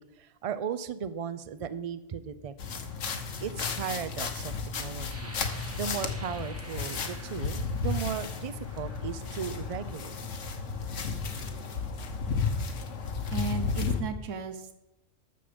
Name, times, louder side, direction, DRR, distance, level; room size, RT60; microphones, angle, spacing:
voice 1, 0.2-2.5 3.4-4.5 4.8-5.3 5.8-10.2, right 7 dB, 45° right, 12 dB, 0.5 m, -36 dB
sound 1, 2.6-14.0, left 5 dB, 75° left, 1.4 m, -33 dB
sound 2, 5.0-10.7 11.3-11.5 11.9-12.4, right 1 dB, 15° right, 0.8 m, -50 dB
voice 2, 13.3-14.9, right 4 dB, 85° right, 10 dB, 1.2 m, -35 dB
13.0 x 6.9 x 5.1 m, 0.91 s
omnidirectional pair, 1.3 m